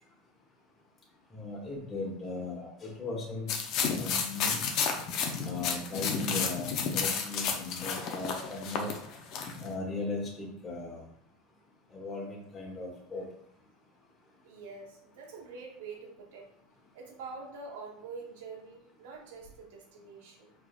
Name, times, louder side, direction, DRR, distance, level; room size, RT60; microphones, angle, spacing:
voice 1, 1.3-3.5 4.0-4.6 5.4-9.0 9.6-11.0 11.9-13.2, left 2 dB, 25° left, -3 dB, 1.4 m, -37 dB
sound 1, 3.5-9.7, left 6 dB, 55° left, 0.8 m, -31 dB
voice 2, 14.4-16.5 16.9-20.5, right 4 dB, 80° right, 0 dB, 1.1 m, -45 dB
4.9 x 3.7 x 2.5 m, 0.70 s
supercardioid pair, 105°, 0 cm